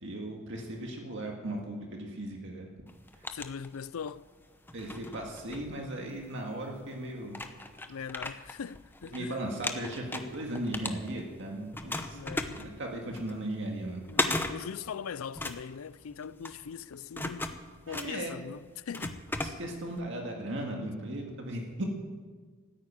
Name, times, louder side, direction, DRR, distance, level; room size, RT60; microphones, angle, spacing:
voice 1, 0.0-2.7 3.1-3.3 4.7-7.4 9.1-12.2 12.5-14.0 14.4-14.6 16.1-16.2 17.9-18.6 19.4-21.9, right 1 dB, 60° right, 2.0 m, -37 dB
sound 1, 2.9-4.2 4.6-6.3 6.9-7.0 7.3-9.2 9.5-11.4 11.7-20.0, left 2 dB, 10° left, 0.8 m, -36 dB
voice 2, 3.3-4.3 7.9-9.4 12.1-12.6 14.1-19.2, left 7 dB, 85° left, 0.5 m, -41 dB
14.0 x 9.4 x 8.9 m
head